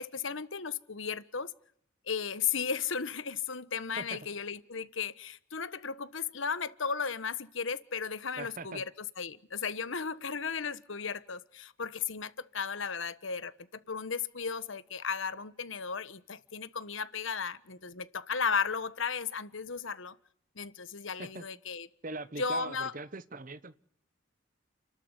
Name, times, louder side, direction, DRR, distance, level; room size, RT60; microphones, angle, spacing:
voice 1, 0.0-1.5 2.1-8.9 9.2-13.5 13.9-20.2 20.5-21.9 22.4-22.9, left 6 dB, 70° left, 1.3 m, -35 dB
voice 2, 8.4-8.8 21.2-21.4 22.0-23.7, right 3 dB, 40° right, 1.0 m, -41 dB
30.0 x 12.5 x 9.7 m
head